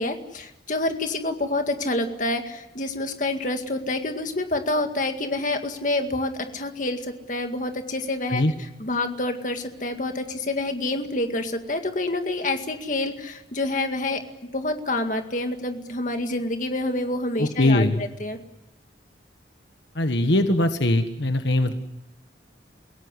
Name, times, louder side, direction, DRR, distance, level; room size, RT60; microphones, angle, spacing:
voice 1, 0.0-8.4 8.8-14.2 14.5-18.4, left 2 dB, 45° left, 6 dB, 2.1 m, -27 dB
voice 2, 17.4-18.0 19.9-21.7, left 1 dB, 75° left, 7 dB, 1.6 m, -21 dB
28.5 x 17.0 x 9.8 m, 0.92 s
head